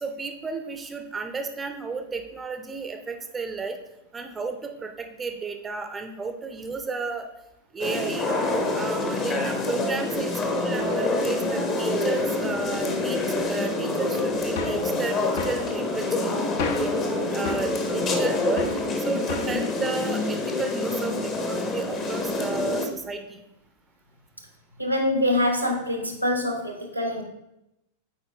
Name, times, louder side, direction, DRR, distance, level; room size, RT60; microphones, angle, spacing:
voice 1, 0.0-3.8 4.1-7.3 7.7-8.3 8.7-16.3 16.7-16.9 17.3-18.7 19.0-23.4, right 3 dB, 15° right, 6 dB, 0.6 m, -32 dB
sound 1, 7.8-22.9, left 2 dB, 30° left, 0.9 m, -26 dB
sound 2, 14.6-14.9 15.4-15.6 16.6-17.0 17.5-17.7 18.6-18.8 19.3-19.6, left 5 dB, 55° left, 0.7 m, -32 dB
voice 2, 24.8-27.2, left 1 dB, 90° right, 2 dB, 1.0 m, -25 dB
8.4 x 4.3 x 3.2 m, 0.86 s
figure-of-eight pair, 90°, 0 cm